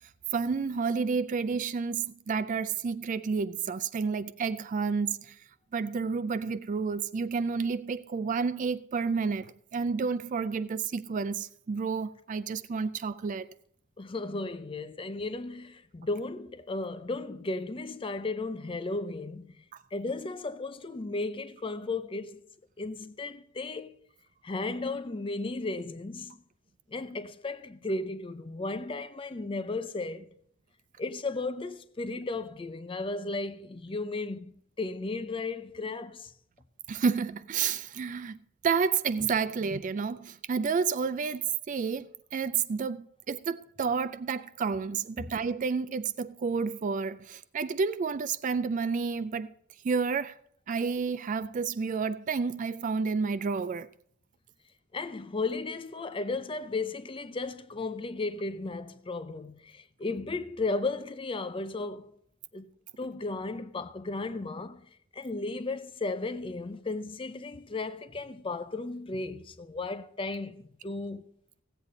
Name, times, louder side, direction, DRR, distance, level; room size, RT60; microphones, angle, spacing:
voice 1, 0.3-5.4 5.7-13.5 36.9-38.4 38.6-49.5 49.8-50.3 50.7-53.9, right 5 dB, 35° right, 0.3 m, -30 dB
voice 2, 14.0-19.6 19.9-22.4 22.8-23.9 24.4-26.4 26.9-30.3 31.0-36.3 45.2-45.3 54.9-62.1 62.5-62.7 63.0-64.8 65.1-71.3, left 3 dB, 25° left, 0.5 m, -35 dB
16.0 x 8.0 x 3.9 m
head